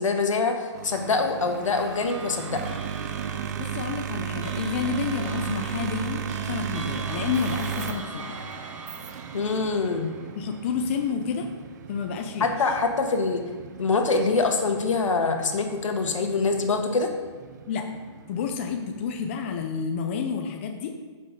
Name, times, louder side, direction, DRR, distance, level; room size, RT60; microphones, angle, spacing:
voice 1, 0.0-2.6 9.3-10.1 12.4-13.4 13.8-17.1, left 4 dB, 80° left, 4 dB, 1.6 m, -24 dB
sound 1, 0.7-19.8, right 8 dB, 35° right, 0.5 m, -36 dB
sound 2, 1.7-11.3, right 4 dB, 90° right, 1.4 m, -40 dB
voice 2, 3.6-8.4 10.4-11.5 11.9-12.5 17.7-17.9 18.3-20.9, left 6 dB, 25° left, 4 dB, 0.5 m, -30 dB
7.7 x 6.3 x 5.2 m, 1.4 s
hypercardioid pair, 165°, 16 cm